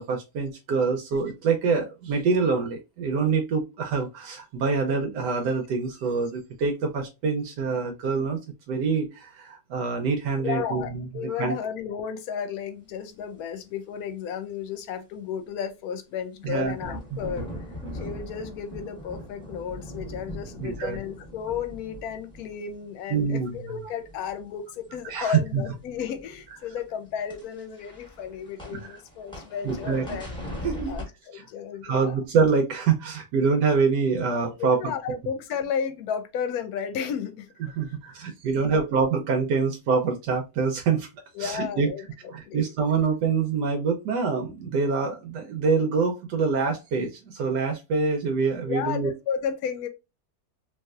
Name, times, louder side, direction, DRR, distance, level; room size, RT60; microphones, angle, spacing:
voice 1, 0.0-8.4 8.7-11.6 16.4-16.7 17.1-17.2 20.6-21.0 23.1-23.7 25.1-25.6 28.7-28.8 29.6-30.0 30.6-31.0 31.3-31.4 31.8-34.8 35.1-35.2 37.8-41.1 41.4-41.9 42.3-49.1, right 5 dB, 85° right, 1.2 m, -25 dB
voice 2, 10.4-17.5 17.9-30.3 30.9-32.2 34.6-37.5 38.2-38.3 38.6-38.9 41.3-42.7 48.7-49.9, left 7 dB, 70° left, 1.0 m, -33 dB
sound 1, 16.5-23.5 23.8-24.5 24.8-31.0, equal, 5° left, 0.8 m, -40 dB
3.2 x 2.8 x 2.3 m
omnidirectional pair, 1.8 m